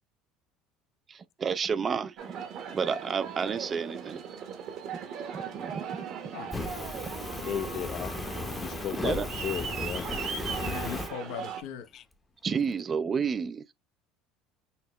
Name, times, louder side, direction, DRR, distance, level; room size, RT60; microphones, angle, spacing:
voice 1, 1.1-2.4 2.7-4.2 5.3-6.0 6.2-6.3 9.0-9.3 12.4-13.6, right 6 dB, 30° right, 0.3 m, -31 dB
Aircraft, 2.2-11.6, right 7 dB, 60° right, 1.0 m, -38 dB
Fire, 6.5-11.1, left 3 dB, 15° left, 0.7 m, -36 dB
voice 2, 7.4-8.1 8.6-10.1 11.9-12.0, left 10 dB, 50° left, 0.4 m, -35 dB
voice 3, 10.6-11.9, left 8 dB, 80° left, 0.7 m, -39 dB
5.6 x 2.0 x 3.0 m
supercardioid pair, 105°, 0 cm